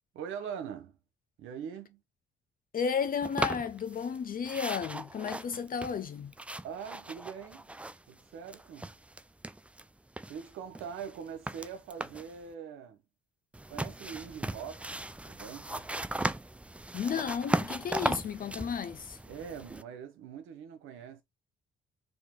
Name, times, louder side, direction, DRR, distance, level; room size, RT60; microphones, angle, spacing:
voice 1, 0.1-1.0 1.4-2.0 6.6-7.7 8.1-9.0 10.3-13.0 13.7-14.9 15.3-15.9 19.3-21.2, right 7 dB, 90° right, 1.2 m, -42 dB
voice 2, 2.7-6.3 16.9-19.2, left 6 dB, 45° left, 0.6 m, -33 dB
sound 1, 3.2-4.2 4.4-8.2 8.5-9.8 10.2-12.4 13.5-19.8, right 1 dB, 5° right, 0.3 m, -37 dB
4.0 x 2.8 x 3.7 m
cardioid pair, 90°, 20 cm